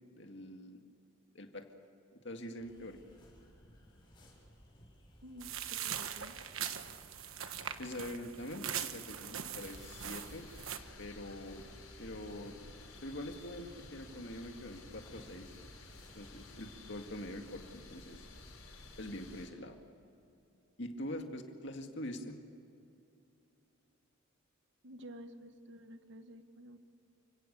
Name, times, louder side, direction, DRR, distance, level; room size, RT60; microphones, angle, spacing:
voice 1, 0.2-0.8 1.3-1.7 2.2-3.0 7.8-10.5 11.0-11.6 12.0-12.6 13.0-15.6 16.1-18.3 19.0-19.8 20.8-22.4, left 1 dB, 55° left, 4 dB, 2.1 m, -44 dB
sound 1, 2.6-16.9, equal, 25° left, 6.4 m, -60 dB
voice 2, 5.2-6.3 24.8-26.8, equal, 55° right, 8 dB, 1.3 m, -51 dB
sound 2, 5.4-10.8, right 9 dB, 75° right, 1.2 m, -41 dB
sound 3, 9.6-19.5, left 2 dB, 80° left, 5.2 m, -53 dB
29.5 x 17.5 x 6.9 m, 2.7 s
head